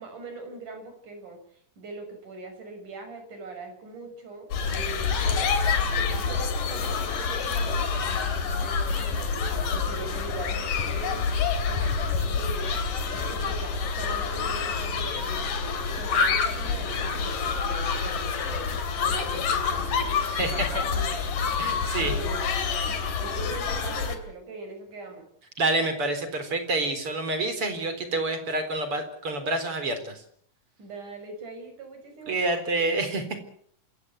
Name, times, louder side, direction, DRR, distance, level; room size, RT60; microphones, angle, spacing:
voice 1, 0.0-11.3 11.7-12.8 13.3-15.5 15.9-21.3 21.5-25.3 30.8-32.6, right 3 dB, 65° right, 6 dB, 7.8 m, -41 dB
sound 1, 4.5-24.2, left 5 dB, 80° left, 4.1 m, -27 dB
voice 2, 21.6-22.1 25.6-30.1 32.3-33.4, right 2 dB, 40° right, 9 dB, 4.7 m, -27 dB
27.5 x 16.0 x 8.4 m, 0.63 s
omnidirectional pair, 3.8 m